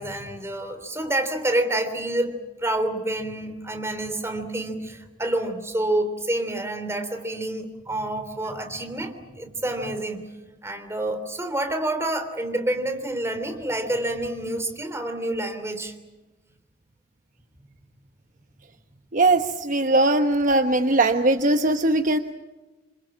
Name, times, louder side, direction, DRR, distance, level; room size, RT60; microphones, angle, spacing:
voice 1, 0.0-10.3 10.6-15.9, right 1 dB, 15° right, 7 dB, 3.3 m, -28 dB
voice 2, 19.1-22.2, right 2 dB, 45° right, 7 dB, 1.0 m, -20 dB
27.5 x 26.5 x 7.4 m, 1.1 s
head